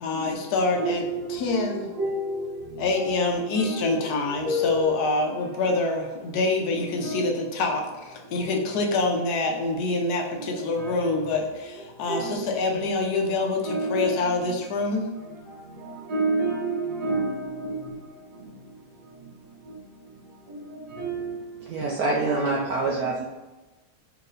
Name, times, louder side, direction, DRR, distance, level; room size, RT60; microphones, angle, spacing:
voice 1, 0.0-1.9 2.8-15.1, left 3 dB, 70° left, 0.9 m, -26 dB
voice 2, 0.7-3.1 3.5-4.1 4.4-5.2 6.7-7.3 10.5-11.1 12.1-12.4 12.7-12.9 13.6-14.6 15.8-17.9 20.5-21.4 21.9-22.6, right 1 dB, 65° right, 1.6 m, -30 dB
voice 3, 21.7-23.3, right 3 dB, 85° right, 0.8 m, -25 dB
4.4 x 2.9 x 3.9 m
omnidirectional pair, 2.4 m